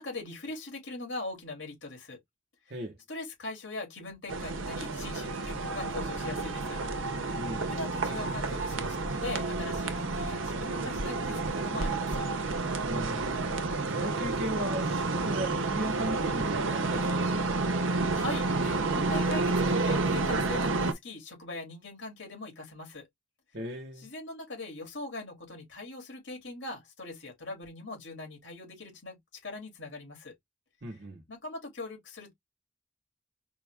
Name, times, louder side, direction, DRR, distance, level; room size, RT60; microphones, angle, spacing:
voice 1, 0.0-2.2 3.1-6.8 7.3-7.4 7.7-12.3 18.1-23.1 24.0-30.3 31.3-32.3, left 2 dB, 80° left, 3.3 m, -41 dB
sound 1, 4.3-20.9, right 3 dB, 90° right, 0.9 m, -30 dB
voice 2, 7.3-7.7 12.9-13.5 13.9-17.6 23.5-24.1 30.8-31.2, equal, 55° right, 1.2 m, -37 dB
5.2 x 2.5 x 3.5 m
head